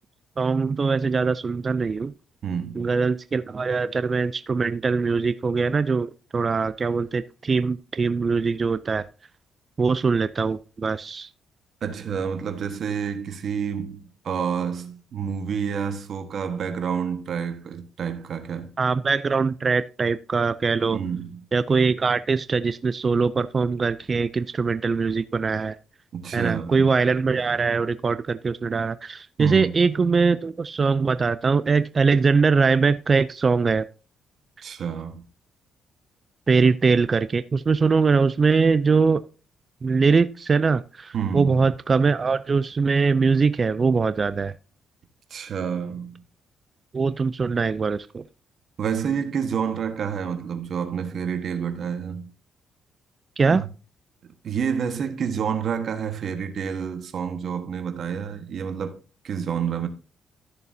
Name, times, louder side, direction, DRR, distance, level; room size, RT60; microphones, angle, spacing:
voice 1, 0.4-2.1 2.8-9.1 9.8-11.3 18.8-21.0 21.5-25.8 26.3-33.9 36.5-39.2 39.8-44.5 46.9-48.2 53.4-53.6, right 4 dB, 35° right, 0.5 m, -22 dB
voice 2, 2.4-2.9 11.8-18.7 20.9-21.4 26.1-26.9 29.4-29.7 34.6-35.2 41.1-41.7 45.3-46.2 48.8-52.3 53.5-53.7 54.4-59.0 59.2-59.9, right 7 dB, 60° right, 1.5 m, -29 dB
13.0 x 6.8 x 2.8 m
cardioid pair, 90°, 0 cm